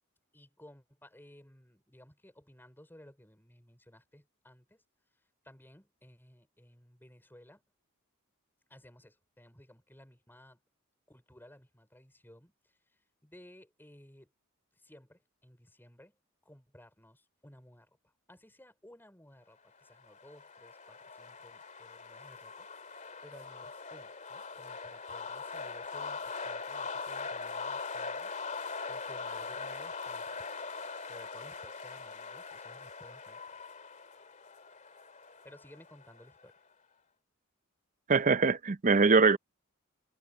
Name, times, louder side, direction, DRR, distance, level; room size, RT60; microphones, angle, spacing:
voice 1, 0.3-4.8 5.4-7.6 8.7-10.6 11.1-14.3 14.7-22.7 23.2-28.3 28.9-30.6 31.1-33.6 35.4-36.5, left 1 dB, 10° left, 5.3 m, -57 dB
sound 1, 19.9-36.5, left 4 dB, 35° left, 2.5 m, -42 dB
voice 2, 38.1-39.4, right 4 dB, 35° right, 0.6 m, -23 dB
head